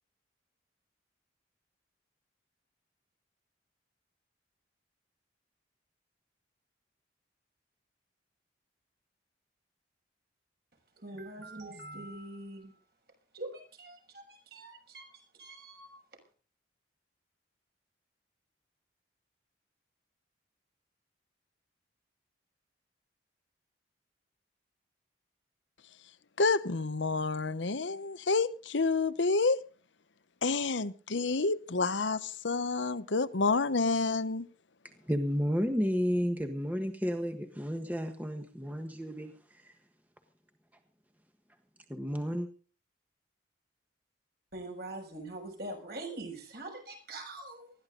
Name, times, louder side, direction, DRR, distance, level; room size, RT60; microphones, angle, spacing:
voice 1, 11.0-12.7 13.3-15.1 15.4-16.0 44.5-47.7, right 2 dB, 55° right, 6.5 m, -43 dB
voice 2, 26.4-29.6 30.4-34.4, left 3 dB, 85° left, 1.0 m, -29 dB
voice 3, 35.1-39.7 41.9-42.5, equal, 10° right, 1.4 m, -32 dB
20.5 x 14.0 x 3.9 m
head